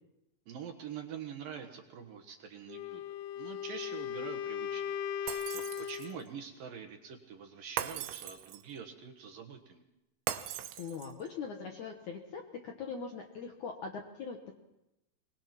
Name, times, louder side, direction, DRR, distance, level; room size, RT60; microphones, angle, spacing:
voice 1, 0.5-9.8, right 7 dB, 60° right, 4 dB, 2.6 m, -45 dB
Wind instrument woodwind instrument, 2.7-6.2, left 9 dB, 90° left, 3.3 m, -38 dB
Shatter, 5.3-6.2 7.8-8.8 10.3-11.3, right 9 dB, 80° right, 3.3 m, -41 dB
voice 2, 10.8-14.5, left 5 dB, 65° left, 3 dB, 2.0 m, -41 dB
23.0 x 21.0 x 6.0 m, 0.90 s
omnidirectional pair, 5.3 m